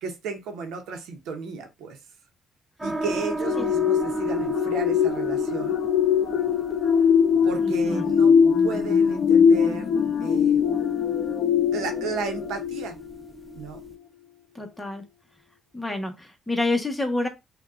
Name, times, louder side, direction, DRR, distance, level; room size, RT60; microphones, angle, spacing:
voice 1, 0.0-2.0 2.8-5.8 7.4-9.9 10.2-10.6 11.7-13.0 13.6-13.8, right 4 dB, 90° right, 0.8 m, -34 dB
sound 1, 2.8-13.9, right 3 dB, 10° right, 0.4 m, -35 dB
sound 2, 3.4-13.3 13.8-14.0, left 7 dB, 90° left, 0.6 m, -22 dB
sound 3, 7.0-12.6, left 3 dB, 35° left, 1.3 m, -37 dB
voice 2, 7.6-8.0 14.5-15.0 15.7-17.3, left 2 dB, 10° left, 1.0 m, -28 dB
5.2 x 2.3 x 2.4 m
cardioid pair, 90°, 0 cm